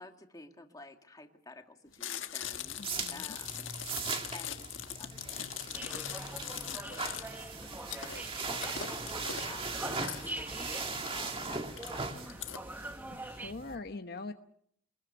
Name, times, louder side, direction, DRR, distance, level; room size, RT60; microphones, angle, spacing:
voice 1, 0.0-2.8 3.1-3.7 4.3-12.4, left 2 dB, 20° left, 4 dB, 2.3 m, -52 dB
Chewing mastication, 1.9-12.6, left 10 dB, 75° left, 1.6 m, -42 dB
sound 1, 2.4-13.8, right 4 dB, 30° right, 2.2 m, -40 dB
voice 2, 2.8-3.4 13.2-14.3, left 3 dB, 55° left, 6 dB, 1.1 m, -43 dB
sound 2, 5.7-13.5, right 1 dB, 10° right, 1.4 m, -44 dB
24.5 x 21.0 x 6.9 m, 0.66 s
head